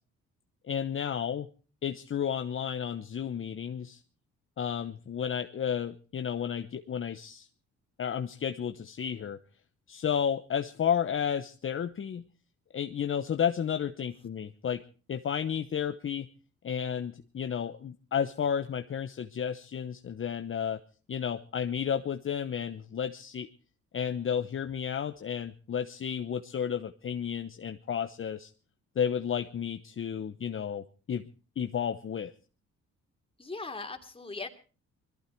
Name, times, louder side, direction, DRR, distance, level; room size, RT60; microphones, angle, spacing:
voice 1, 0.7-1.5 1.8-4.0 4.6-7.5 8.0-9.4 9.9-12.2 12.7-14.8 15.1-16.3 16.6-20.8 21.1-23.5 23.9-28.5 29.0-31.3 31.6-32.3, left 8 dB, 45° left, 8 dB, 1.0 m, -32 dB
voice 2, 33.4-34.5, left 3 dB, 20° left, 4 dB, 3.0 m, -39 dB
21.0 x 14.5 x 4.6 m, 0.38 s
cardioid pair, 90°, 30 cm